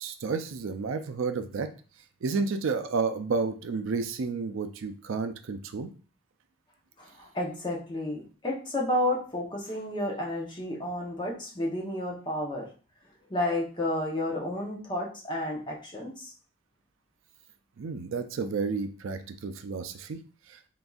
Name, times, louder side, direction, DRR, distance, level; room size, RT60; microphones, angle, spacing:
voice 1, 0.0-1.7 2.2-5.9 17.8-20.2 20.5-20.6, right 4 dB, 80° right, 9 dB, 0.4 m, -31 dB
voice 2, 7.0-12.7 13.3-16.3, left 1 dB, 20° left, -2 dB, 0.8 m, -31 dB
3.9 x 3.5 x 2.3 m, 0.38 s
head